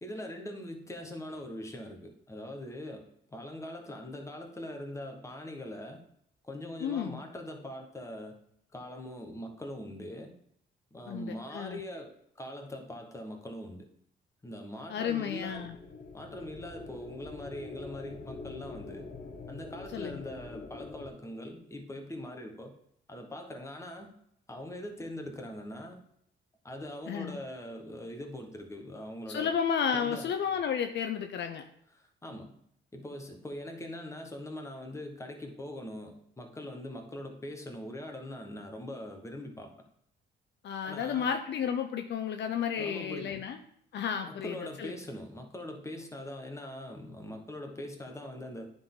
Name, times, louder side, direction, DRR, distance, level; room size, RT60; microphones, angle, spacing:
voice 1, 0.0-6.0 6.4-8.4 8.7-10.3 10.9-13.9 14.4-15.7 16.1-19.1 19.5-22.8 23.1-24.1 24.5-26.0 26.6-29.5 29.9-30.3 31.9-32.5 32.9-39.7 40.8-41.3 42.8-43.4 44.3-48.7, left 1 dB, 15° left, 3 dB, 1.3 m, -42 dB
voice 2, 6.8-7.2 11.1-11.8 14.9-15.7 19.9-20.2 27.1-27.4 29.3-31.6 40.6-43.6 43.9-44.9, left 7 dB, 60° left, 6 dB, 0.6 m, -32 dB
sound 1, 15.0-21.1, left 3 dB, 40° left, 1.1 m, -45 dB
9.6 x 4.0 x 3.8 m, 0.69 s
cardioid pair, 90°, 20 cm